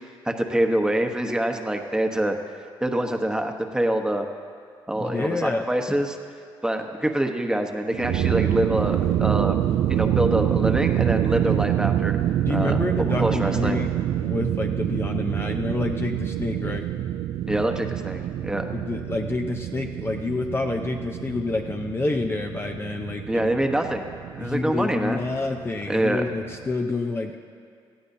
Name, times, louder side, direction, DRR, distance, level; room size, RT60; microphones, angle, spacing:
voice 1, 0.0-2.4 2.8-4.2 4.9-6.2 6.6-9.6 9.9-12.2 12.5-13.8 17.5-18.6 23.3-24.1 24.3-25.2 25.9-26.2, right 1 dB, 10° right, 4 dB, 1.1 m, -25 dB
voice 2, 5.0-5.7 12.4-13.9 14.2-16.9 18.7-23.5 24.4-27.4, left 3 dB, 25° left, 3 dB, 0.7 m, -28 dB
sound 1, 7.9-26.7, right 12 dB, 80° right, 0.4 m, -26 dB
18.5 x 14.0 x 2.7 m, 2.2 s
cardioid pair, 85°, 10 cm